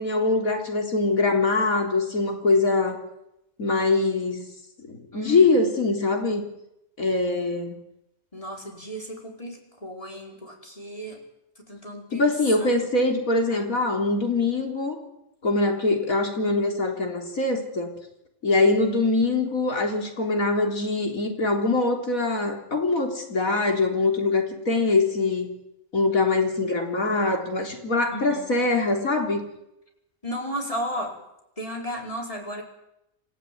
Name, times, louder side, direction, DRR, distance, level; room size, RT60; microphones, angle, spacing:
voice 1, 0.0-3.0 3.6-4.4 4.9-6.4 7.0-7.8 12.1-15.0 15.4-17.9 18.4-25.5 25.9-29.4, left 3 dB, 85° left, 3 dB, 4.0 m, -23 dB
voice 2, 5.1-5.5 8.3-11.2 11.6-12.3 12.6-12.9 13.5-13.7 28.1-28.4 30.2-31.1 31.6-32.6, equal, 25° left, 1 dB, 4.9 m, -34 dB
27.5 x 15.0 x 9.4 m, 0.85 s
omnidirectional pair, 1.4 m